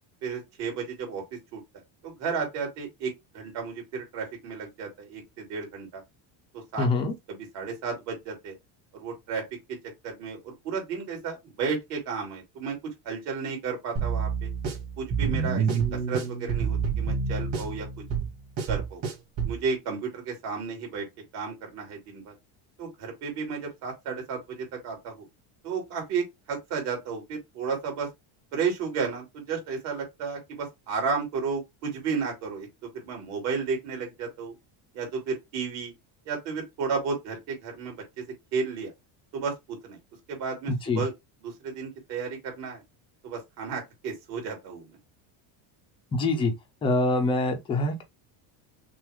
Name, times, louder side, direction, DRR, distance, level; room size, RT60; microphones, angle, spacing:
voice 1, 0.2-1.6 2.0-6.0 6.5-6.9 7.3-8.5 8.9-9.4 9.7-9.8 10.0-14.5 15.0-15.7 15.9-17.9 18.7-19.0 19.4-21.1 21.3-22.3 22.8-25.2 25.6-28.1 28.5-34.5 34.9-35.9 36.3-38.2 38.5-38.9 39.3-40.0 40.3-41.1 41.4-42.8 43.2-45.0, right 5 dB, 60° right, 2.9 m, -33 dB
voice 2, 6.8-7.1 40.7-41.0 46.1-46.5 46.8-48.0, left 2 dB, 15° left, 0.3 m, -25 dB
sound 1, 14.0-19.6, right 6 dB, 40° right, 2.2 m, -28 dB
6.0 x 2.3 x 3.4 m
cardioid pair, 180°, 47 cm